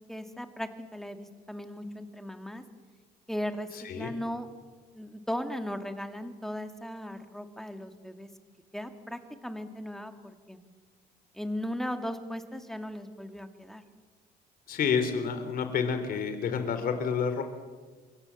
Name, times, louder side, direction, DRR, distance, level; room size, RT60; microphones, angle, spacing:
voice 1, 0.1-2.6 3.3-3.7 3.9-4.5 4.9-8.3 8.7-10.6 11.3-13.8, equal, ahead, 7 dB, 2.3 m, -37 dB
voice 2, 3.7-4.1 14.7-17.4, left 6 dB, 60° left, 8 dB, 3.7 m, -29 dB
26.5 x 23.0 x 7.2 m, 1.4 s
cardioid pair, 110°, 17 cm